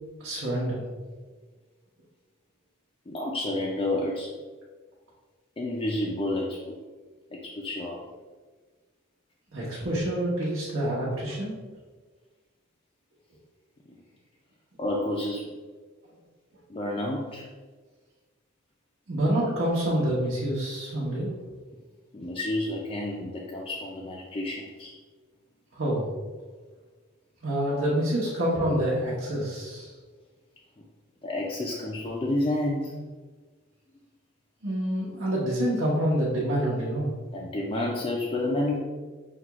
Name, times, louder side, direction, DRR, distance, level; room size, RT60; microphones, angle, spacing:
voice 1, 0.2-0.8 9.5-11.5 19.1-21.3 25.7-26.1 27.4-29.9 34.6-37.2, right 1 dB, 80° right, -8 dB, 1.0 m, -27 dB
voice 2, 3.1-4.3 5.6-6.8 7.3-8.0 13.9-14.0 14.8-15.5 16.7-17.5 22.1-24.9 27.7-27.8 30.8-30.9 31.2-32.9 37.3-38.8, left 1 dB, 25° left, -3 dB, 0.4 m, -30 dB
5.9 x 2.3 x 2.9 m, 1.4 s
head